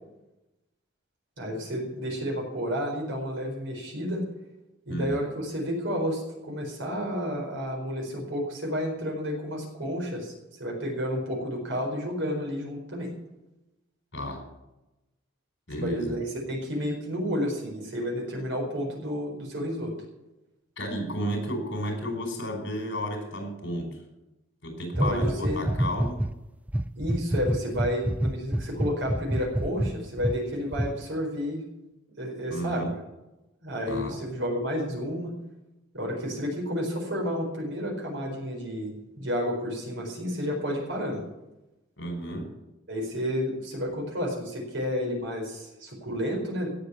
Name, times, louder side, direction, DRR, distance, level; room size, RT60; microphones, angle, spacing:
voice 1, 1.4-4.2 4.9-10.3 10.6-13.1 15.8-19.9 25.0-25.6 27.0-31.6 32.2-33.0 33.6-35.3 35.9-41.2 42.9-46.7, equal, 75° right, -1 dB, 4.7 m, -31 dB
voice 2, 14.1-14.4 15.7-16.2 20.8-24.0 24.6-26.2 32.5-32.9 33.9-34.1 42.0-42.5, equal, 60° left, 3 dB, 4.9 m, -32 dB
sound 1, 24.9-26.3 26.7-30.4 30.7-30.9, right 1 dB, 5° right, 0.4 m, -27 dB
17.0 x 6.7 x 8.5 m, 0.98 s
head